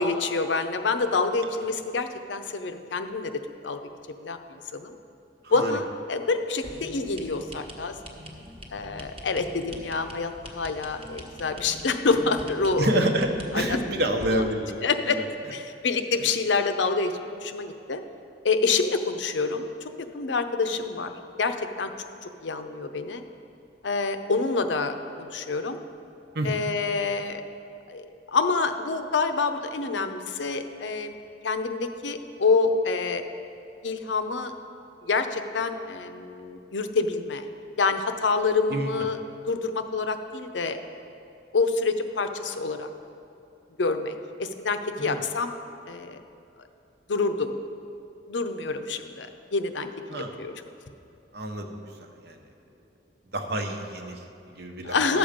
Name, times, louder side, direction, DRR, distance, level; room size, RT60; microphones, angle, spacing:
voice 1, 0.0-3.3 3.6-3.8 4.2-5.0 5.5-7.9 8.7-12.9 13.5-13.8 14.3-14.4 14.8-15.2 15.5-18.0 18.4-21.1 21.4-21.9 22.2-23.2 23.8-25.8 26.4-27.4 27.9-31.2 31.4-33.2 33.8-34.5 35.0-37.4 37.8-39.2 39.5-40.8 41.5-42.9 43.8-45.6 45.9-46.2 47.1-47.5 48.3-49.9 50.4-50.5 54.8-55.2, left 4 dB, 85° left, 8 dB, 0.6 m, -27 dB
voice 2, 5.4-5.8 12.8-15.3 26.3-26.6 38.7-38.9 45.0-45.2 50.1-50.4 51.3-52.4 53.3-55.2, right 1 dB, 60° right, 4 dB, 0.9 m, -28 dB
sound 1, 6.6-14.5, equal, 30° right, 1.0 m, -43 dB
11.5 x 7.0 x 5.1 m, 2.6 s
head